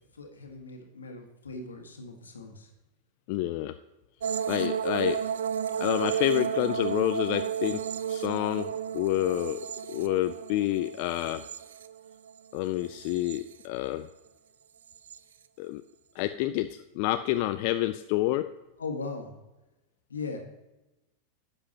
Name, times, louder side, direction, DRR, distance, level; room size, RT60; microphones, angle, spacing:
voice 1, 0.1-2.7 18.8-19.3 20.1-20.4, left 4 dB, 85° left, 3 dB, 1.6 m, -38 dB
voice 2, 3.3-3.8 4.5-5.2 5.8-11.4 12.5-14.1 15.6-15.8 16.1-18.5, left 15 dB, 55° left, 10 dB, 0.4 m, -28 dB
sound 1, 4.2-12.4 12.8-13.6 14.9-15.2, right 8 dB, 75° right, 0.4 m, -33 dB
12.0 x 8.1 x 2.9 m, 1.0 s
hypercardioid pair, 95°, 0 cm